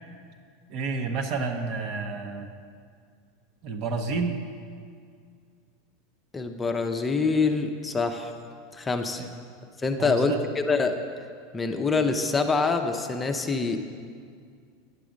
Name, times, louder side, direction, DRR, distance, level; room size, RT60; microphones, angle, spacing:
voice 1, 0.7-2.5 3.6-4.4 9.2-9.3 10.0-10.4, right 4 dB, 55° right, 5 dB, 0.9 m, -30 dB
voice 2, 6.3-8.3 8.8-9.2 9.8-11.0 11.5-13.8, left 4 dB, 20° left, 5 dB, 0.6 m, -25 dB
9.6 x 5.9 x 5.1 m, 2.2 s
hypercardioid pair, 105°, 0 cm